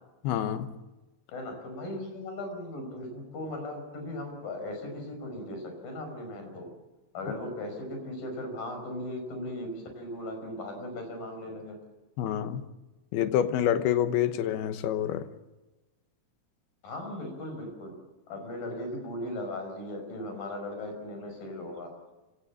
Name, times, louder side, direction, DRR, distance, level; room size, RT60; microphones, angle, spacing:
voice 1, 0.2-0.7 12.2-12.7 13.1-15.3, left 10 dB, 70° left, 2.7 m, -27 dB
voice 2, 1.3-6.7 7.1-11.8 16.8-17.9 18.3-21.9, left 1 dB, 50° left, 7.0 m, -38 dB
27.5 x 17.5 x 7.5 m
omnidirectional pair, 5.4 m